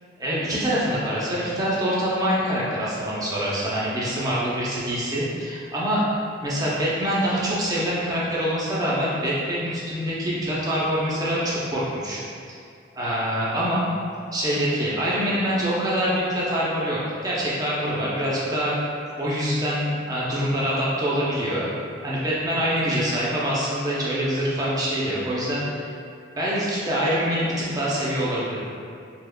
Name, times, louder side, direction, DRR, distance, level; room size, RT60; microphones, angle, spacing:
voice 1, 0.2-6.0 6.4-12.2 12.5-12.6 12.9-13.8 14.3-18.8 19.2-25.9 26.4-28.7, equal, 20° right, -7 dB, 0.6 m, -25 dB
3.5 x 2.9 x 2.3 m, 2.3 s
head